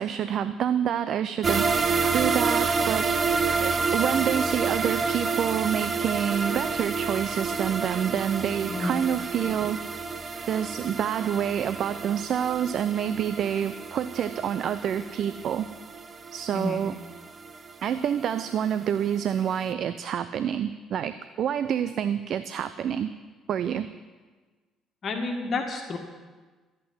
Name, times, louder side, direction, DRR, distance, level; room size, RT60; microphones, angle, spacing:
voice 1, 0.0-3.1 3.6-9.8 10.5-15.7 16.3-17.0 17.8-23.1 23.5-23.9, right 9 dB, 55° right, 12 dB, 0.6 m, -27 dB
sound 1, 1.4-18.5 18.8-18.9 19.4-19.5, right 4 dB, 35° right, 1.0 m, -29 dB
voice 2, 25.0-26.0, left 3 dB, 50° left, 3 dB, 1.8 m, -30 dB
14.0 x 8.5 x 9.6 m, 1.4 s
hypercardioid pair, 50°, 0 cm